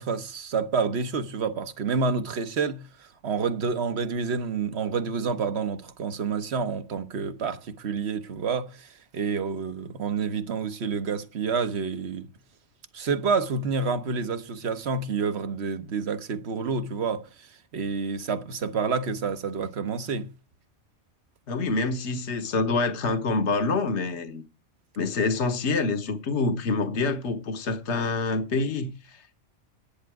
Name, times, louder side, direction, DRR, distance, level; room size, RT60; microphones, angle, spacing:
voice 1, 0.0-12.3 12.9-17.5 17.7-20.3, right 5 dB, 65° right, 1.3 m, -28 dB
voice 2, 21.5-24.4 25.0-29.4, left 3 dB, 70° left, 1.4 m, -26 dB
11.5 x 10.5 x 4.8 m
omnidirectional pair, 1.2 m